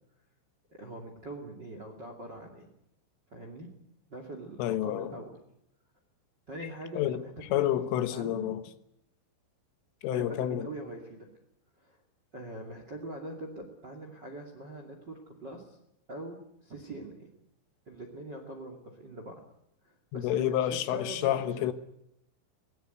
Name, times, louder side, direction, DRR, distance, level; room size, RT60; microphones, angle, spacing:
voice 1, 0.7-2.7 3.3-3.8 4.1-5.3 6.5-7.6 8.1-8.5 10.0-11.3 11.8-12.0 12.3-15.8 16.1-17.3 17.9-19.4 19.8-21.7, right 1 dB, 30° right, 2.3 m, -43 dB
voice 2, 4.6-5.2 7.0-7.3 7.5-8.6 10.0-10.7 20.1-21.7, left 12 dB, 90° left, 3.8 m, -29 dB
22.5 x 18.5 x 9.3 m
omnidirectional pair, 5.5 m